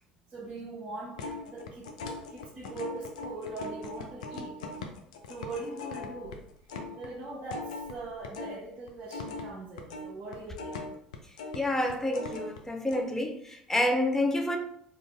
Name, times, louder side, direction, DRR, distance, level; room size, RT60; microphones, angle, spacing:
voice 1, 0.3-4.6 5.3-6.4 7.0-10.8, right 2 dB, 40° right, -4 dB, 0.8 m, -41 dB
sound 1, 1.1-8.6 8.9-12.6 12.9-13.0, left 3 dB, 75° left, 0.4 m, -40 dB
voice 2, 11.5-14.6, left 1 dB, 10° left, 3 dB, 0.6 m, -28 dB
3.8 x 2.5 x 2.8 m, 0.69 s
hypercardioid pair, 65°, 4 cm